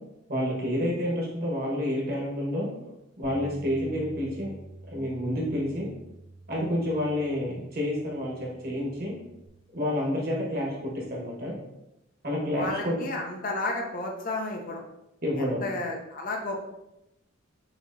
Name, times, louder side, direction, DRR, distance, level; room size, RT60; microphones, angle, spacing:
voice 1, 0.3-2.7 3.2-4.5 4.9-5.9 6.5-9.1 9.7-11.5 12.2-13.0 15.2-15.6, left 1 dB, 45° right, -3 dB, 1.2 m, -29 dB
Bass guitar, 3.2-9.5, right 2 dB, 85° right, 0.6 m, -48 dB
voice 2, 12.5-14.8 15.3-16.6, left 2 dB, 40° left, 2 dB, 0.6 m, -32 dB
6.2 x 2.8 x 2.6 m, 0.90 s
head